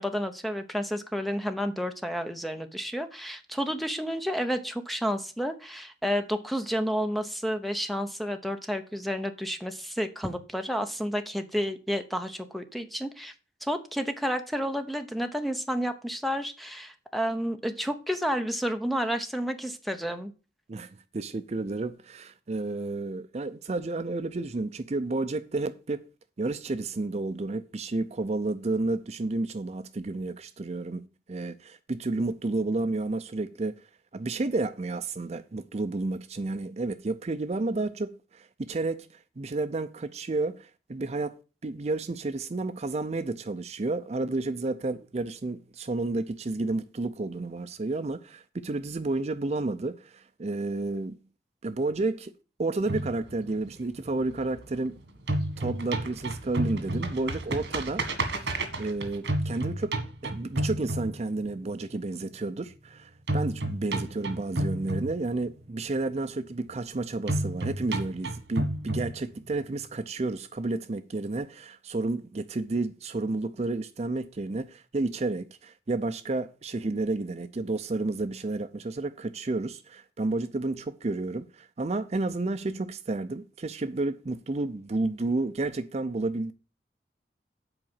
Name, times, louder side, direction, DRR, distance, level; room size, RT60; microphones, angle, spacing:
voice 1, 0.0-13.3 13.6-20.3, equal, ahead, 0.8 m, -31 dB
voice 2, 20.7-26.0 26.4-31.0 31.3-41.4 41.6-51.2 51.6-52.3 52.6-55.0 55.6-58.4 58.8-60.0 60.2-86.5, right 2 dB, 40° right, 0.5 m, -31 dB
sound 1, 52.9-54.9 55.2-61.6 63.3-65.6 67.3-69.6, right 1 dB, 80° right, 1.8 m, -31 dB
7.9 x 4.9 x 7.2 m
head